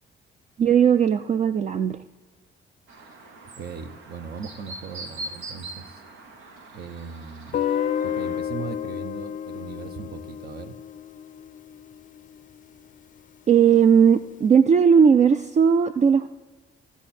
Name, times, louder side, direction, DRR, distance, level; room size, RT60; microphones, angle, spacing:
voice 1, 0.6-2.0 13.5-16.3, right 7 dB, 35° right, 11 dB, 0.4 m, -17 dB
Chirp tweet, 2.9-8.4, right 2 dB, 90° right, 1.3 m, -42 dB
voice 2, 3.6-6.0 6.7-7.6 8.0-10.8, right 6 dB, 50° right, 10 dB, 0.9 m, -38 dB
Guitar, 7.5-12.4, left 9 dB, 40° left, 0.4 m, -31 dB
15.5 x 7.2 x 4.3 m, 1.3 s
cardioid pair, 90°, 20 cm